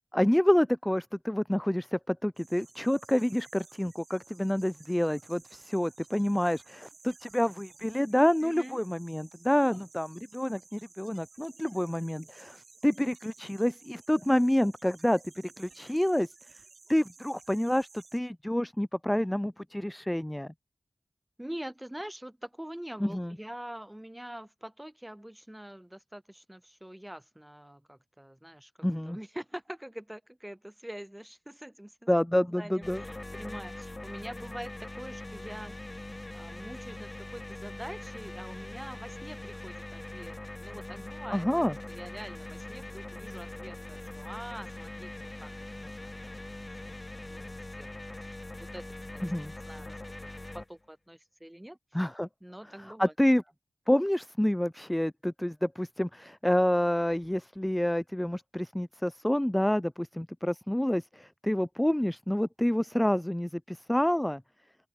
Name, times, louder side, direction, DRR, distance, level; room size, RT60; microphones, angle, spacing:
voice 1, 0.1-16.3 16.9-20.5 23.0-23.4 28.8-29.2 32.1-33.0 41.3-41.7 49.2-49.5 51.9-52.3 52.9-53.4 53.9-64.4, left 1 dB, 10° left, 0.4 m, -28 dB
sound 1, 2.4-18.2, right 4 dB, 75° right, 5.7 m, -56 dB
voice 2, 8.4-8.8 9.6-9.8 21.4-28.7 29.1-32.1 32.4-35.8 36.3-48.8 49.1-49.2 49.6-50.3 50.5-51.8 52.4-53.1, right 1 dB, 10° right, 4.3 m, -45 dB
sound 2, 32.8-50.7, left 2 dB, 25° left, 5.1 m, -42 dB
open air
wide cardioid pair, 85°, 0 cm